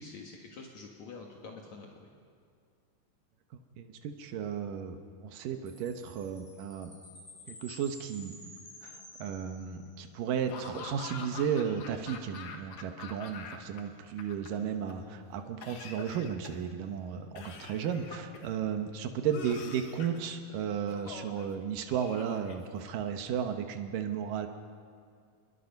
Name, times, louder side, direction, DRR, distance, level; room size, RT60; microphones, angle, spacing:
voice 1, 0.0-2.1, left 4 dB, 60° left, 0 dB, 2.9 m, -47 dB
voice 2, 3.8-6.9 7.5-8.4 8.8-24.5, right 8 dB, 85° right, 6 dB, 2.9 m, -34 dB
Chime, 5.7-10.1, left 1 dB, 20° left, 7.1 m, -52 dB
Laughter / Cough, 10.5-13.8 14.1-14.9 15.6-16.7 17.4-18.6 19.3-20.2 20.9-21.5 21.9-23.1, left 6 dB, 90° left, 3.2 m, -45 dB
27.5 x 22.0 x 5.4 m, 2.3 s
omnidirectional pair, 3.8 m